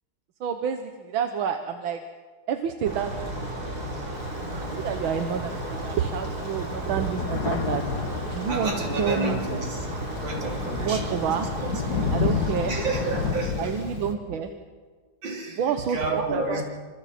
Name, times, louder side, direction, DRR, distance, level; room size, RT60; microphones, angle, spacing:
voice 1, 0.4-2.0 2.5-3.5 4.4-9.4 10.6-11.5 12.1-12.8 13.6-14.5 15.6-16.6, right 7 dB, 90° right, 6 dB, 1.8 m, -29 dB
sound 1, 2.8-13.8, equal, 20° right, 7.8 m, -49 dB
sound 2, 2.8-13.3, right 1 dB, 50° right, 4.4 m, -33 dB
Thunder, 4.2-5.4 6.0-6.1 6.3-14.1, left 5 dB, 55° left, 1.9 m, -31 dB
voice 2, 8.5-9.8 10.2-11.1 11.9-12.2 12.7-13.7 15.2-15.6 15.9-16.6, right 2 dB, 70° right, 0 dB, 4.1 m, -30 dB
28.0 x 26.5 x 4.3 m, 1.5 s
omnidirectional pair, 2.1 m